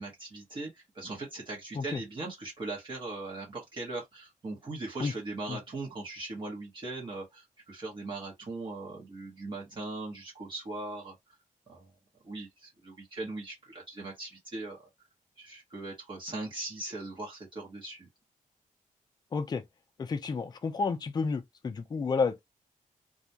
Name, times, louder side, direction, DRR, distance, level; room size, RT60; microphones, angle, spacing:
voice 1, 0.0-11.1 11.7-11.9 12.2-14.8 15.4-18.1, right 2 dB, 35° right, 0.9 m, -39 dB
voice 2, 19.3-19.6 20.0-22.4, left 4 dB, 30° left, 0.4 m, -31 dB
2.3 x 2.1 x 2.7 m
wide cardioid pair, 110°, 14 cm